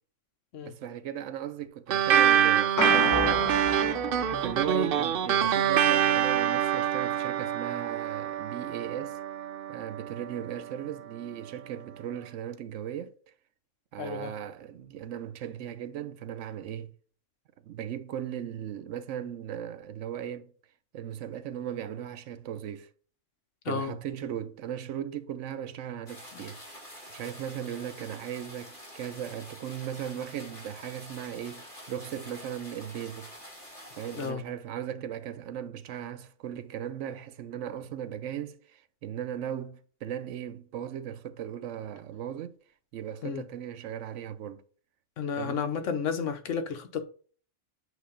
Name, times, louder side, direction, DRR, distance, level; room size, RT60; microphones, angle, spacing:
voice 1, 0.6-3.5 4.3-9.2 9.7-13.1 13.9-16.9 17.6-20.5 20.9-22.9 23.7-26.6 27.1-33.3 34.0-42.6 42.9-44.6 45.4-45.7, right 10 dB, 85° right, 1.0 m, -37 dB
sound 1, 1.9-10.7, right 9 dB, 60° right, 0.7 m, -26 dB
sound 2, 2.8-5.3, left 2 dB, 15° left, 1.0 m, -32 dB
voice 2, 14.0-14.3 23.6-23.9 26.3-26.4 34.2-34.4 43.2-43.4 45.2-47.0, left 6 dB, 90° left, 1.2 m, -32 dB
sound 3, 26.1-34.3, equal, 45° left, 2.7 m, -47 dB
8.1 x 2.8 x 5.0 m
omnidirectional pair, 1.2 m